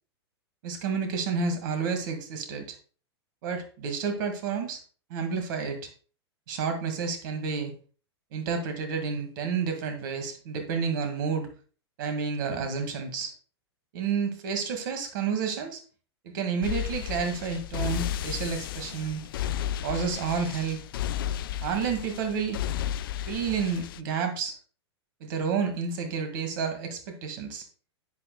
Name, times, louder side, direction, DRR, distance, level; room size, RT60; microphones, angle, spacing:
voice 1, 0.6-2.8 3.4-4.8 5.1-5.9 6.5-7.7 8.3-11.5 12.0-13.3 13.9-15.8 16.3-19.2 19.8-20.8 21.6-22.6 23.3-24.6 25.2-27.6, right 6 dB, 50° right, 6 dB, 2.0 m, -30 dB
sound 1, 16.6-24.0, left 11 dB, 55° left, 0.4 m, -33 dB
10.5 x 8.8 x 2.3 m, 0.39 s
figure-of-eight pair, 100°, 14 cm